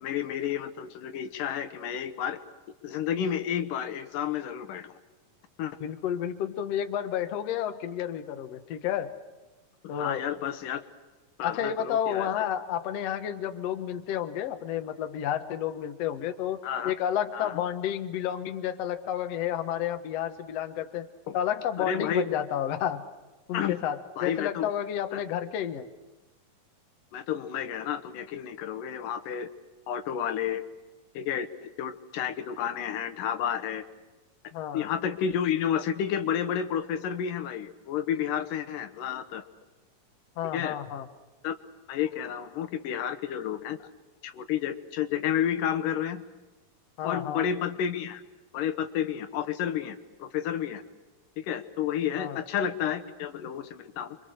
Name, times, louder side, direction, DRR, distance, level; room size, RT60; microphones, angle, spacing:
voice 1, 0.0-2.4 2.8-4.9 5.6-5.8 10.0-10.8 11.4-12.5 16.6-16.9 17.3-17.6 21.3-21.4 21.8-22.3 23.5-23.8 24.2-24.7 25.1-25.2 27.1-29.5 29.9-30.6 31.1-33.8 34.7-39.5 40.5-40.8 41.4-41.6 41.9-43.9 44.2-46.2 47.0-48.2 48.5-50.8 51.4-54.2, left 9 dB, 80° left, 9 dB, 2.6 m, -31 dB
voice 2, 5.8-9.1 9.9-10.2 11.4-16.6 16.8-21.1 21.3-23.0 23.5-25.9 34.5-34.9 40.4-41.1 47.0-47.4 52.2-52.4, left 10 dB, 60° left, 7 dB, 1.9 m, -31 dB
29.0 x 24.5 x 6.5 m, 1.1 s
omnidirectional pair, 3.9 m